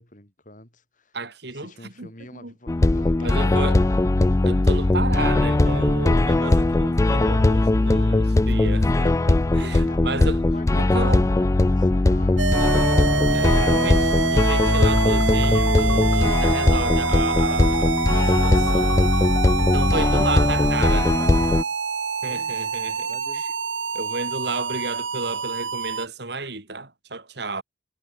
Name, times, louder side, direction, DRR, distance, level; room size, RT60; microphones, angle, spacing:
voice 1, 0.0-1.2 1.5-4.5 7.6-8.6 9.7-14.3 19.9-20.6 20.9-21.8 22.2-22.8 23.1-23.4, left 1 dB, 45° left, 7.3 m, -46 dB
voice 2, 1.1-2.1 2.4-2.5 3.2-3.8 4.4-10.4 10.7-11.2 13.3-14.0 14.3-17.9 18.2-19.0 19.6-21.1 22.2-23.1 23.9-27.6, right 3 dB, 60° right, 3.3 m, -31 dB
sound 1, 2.7-21.6, left 2 dB, 15° left, 0.3 m, -19 dB
sound 2, 12.4-26.1, right 5 dB, 90° right, 1.3 m, -26 dB
head